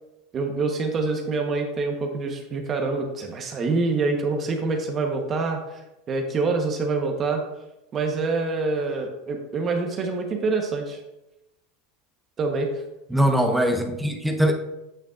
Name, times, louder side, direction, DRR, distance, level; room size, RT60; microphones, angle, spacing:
voice 1, 0.3-5.8 6.1-7.4 7.9-11.0 12.4-12.8, right 3 dB, 30° right, 3 dB, 1.1 m, -26 dB
voice 2, 13.1-14.5, equal, 5° right, 4 dB, 0.8 m, -21 dB
9.2 x 6.6 x 2.5 m, 0.93 s
supercardioid pair, 115°, 0 cm